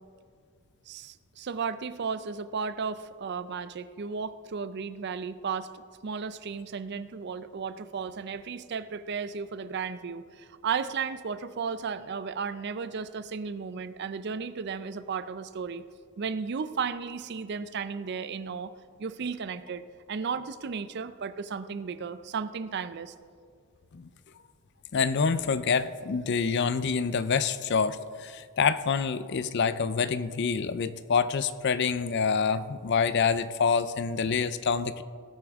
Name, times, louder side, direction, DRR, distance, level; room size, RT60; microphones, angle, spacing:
voice 1, 0.9-15.8 16.2-18.7 19.0-19.8 20.1-23.1, right 5 dB, 50° right, 13 dB, 0.4 m, -34 dB
voice 2, 24.9-35.0, left 5 dB, 50° left, 14 dB, 0.4 m, -27 dB
18.0 x 8.6 x 3.5 m, 2.1 s
head